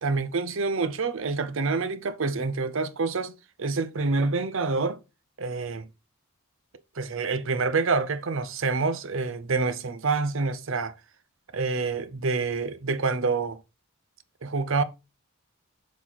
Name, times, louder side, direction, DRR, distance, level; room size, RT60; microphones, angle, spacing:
voice 1, 0.0-3.3 3.6-5.0 5.4-5.9 7.0-10.9 11.5-13.6 14.4-14.8, right 4 dB, 60° right, 0.6 m, -27 dB
7.0 x 4.1 x 4.2 m
head